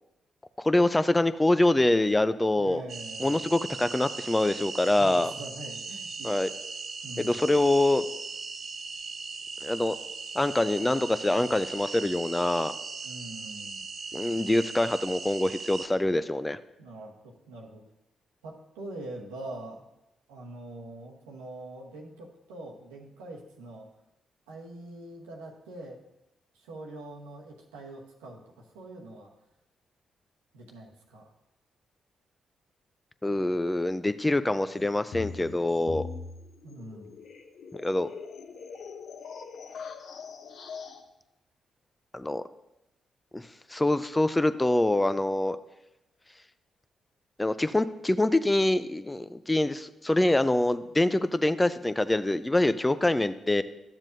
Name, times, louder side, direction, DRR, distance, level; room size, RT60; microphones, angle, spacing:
voice 1, 0.6-2.8 3.2-5.3 6.2-6.5 7.2-8.0 9.6-10.0 10.3-12.7 14.1-16.6 33.2-36.1 37.7-38.1 42.1-42.4 43.3-43.4 43.7-45.6 47.4-53.6, left 1 dB, 20° left, 13 dB, 0.5 m, -25 dB
voice 2, 2.6-3.4 5.0-6.6 7.0-7.4 13.0-13.8 16.8-17.8 18.4-19.9 20.3-23.9 24.5-26.0 26.5-29.3 30.5-31.3 36.6-37.2, right 1 dB, 85° right, -1 dB, 1.1 m, -43 dB
sound 1, 2.9-15.9, right 4 dB, 55° right, 0.9 m, -39 dB
sound 2, 34.7-41.0, left 5 dB, 65° left, 0.7 m, -42 dB
12.0 x 7.3 x 2.6 m, 0.89 s
hypercardioid pair, 40°, 0 cm